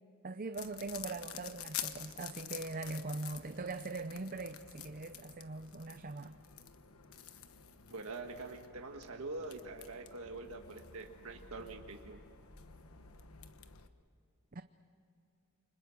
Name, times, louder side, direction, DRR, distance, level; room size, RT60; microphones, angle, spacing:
voice 1, 0.2-6.3 14.5-14.6, right 3 dB, 40° right, 9 dB, 0.6 m, -41 dB
sound 1, 0.5-13.9, left 9 dB, 70° left, 1.2 m, -49 dB
voice 2, 7.9-12.2, right 3 dB, 75° right, 2 dB, 1.6 m, -45 dB
29.0 x 25.5 x 6.5 m, 2.8 s
head